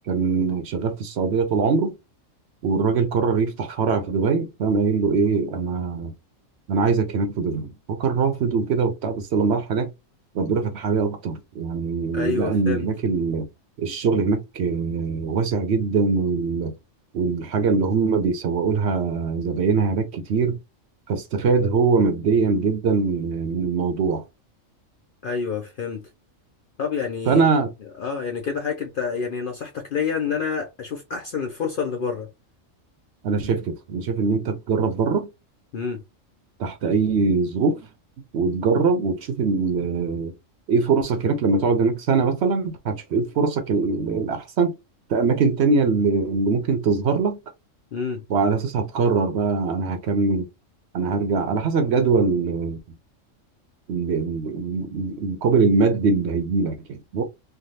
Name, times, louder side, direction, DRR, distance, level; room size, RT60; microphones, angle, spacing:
voice 1, 0.1-2.0 2.6-6.1 6.7-9.9 10.3-13.5 13.8-16.7 17.1-20.6 21.1-24.2 27.3-27.7 33.2-35.3 36.6-37.8 38.3-40.3 40.7-44.8 45.1-47.4 48.3-50.5 50.9-52.8 53.9-57.2, right 4 dB, 65° right, 0.8 m, -22 dB
voice 2, 12.1-12.9 25.2-26.1 26.8-27.4 28.0-32.3 35.7-36.0 47.9-48.2, left 6 dB, 60° left, 0.5 m, -28 dB
3.3 x 2.3 x 2.7 m
omnidirectional pair, 1.4 m